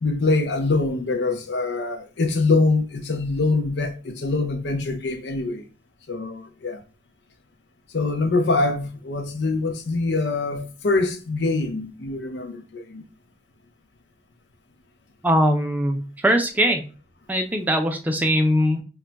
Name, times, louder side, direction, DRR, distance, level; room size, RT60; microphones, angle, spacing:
voice 1, 0.0-5.6 6.1-6.8 7.9-13.0, left 3 dB, 75° left, 0.5 m, -24 dB
voice 2, 15.2-16.8 17.3-18.8, equal, 10° right, 0.4 m, -21 dB
2.2 x 2.1 x 3.8 m
head